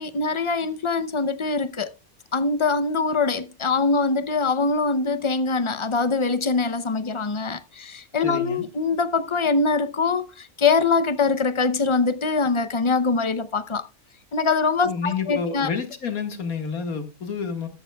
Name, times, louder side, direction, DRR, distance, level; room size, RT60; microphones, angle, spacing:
voice 1, 0.0-1.9 2.3-13.9 14.3-15.7, left 4 dB, 40° left, 0.4 m, -23 dB
voice 2, 8.2-8.7 14.8-17.7, left 5 dB, 70° left, 2.2 m, -29 dB
13.5 x 13.0 x 2.3 m
omnidirectional pair, 1.6 m